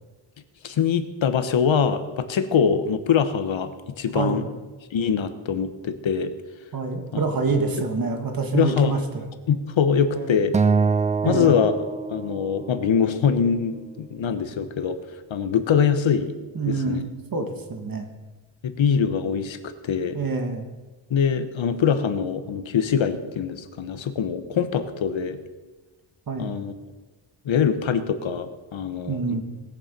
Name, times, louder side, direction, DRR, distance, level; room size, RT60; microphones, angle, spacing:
voice 1, 0.6-4.4 4.9-6.3 8.5-8.9 9.5-10.5 11.2-11.7 12.1-15.0 15.3-16.3 16.7-17.0 18.6-20.2 21.1-25.4 26.4-26.7 27.4-29.4, left 7 dB, 75° left, 10 dB, 1.2 m, -23 dB
voice 2, 4.1-4.5 6.7-9.3 10.1-10.4 11.2-11.6 16.5-18.1 20.1-20.7 26.3-26.6 29.1-29.4, right 4 dB, 45° right, 5 dB, 1.8 m, -26 dB
Acoustic guitar, 10.5-12.9, right 5 dB, 20° right, 0.3 m, -24 dB
19.5 x 7.2 x 5.3 m, 1.2 s
wide cardioid pair, 130°, 47 cm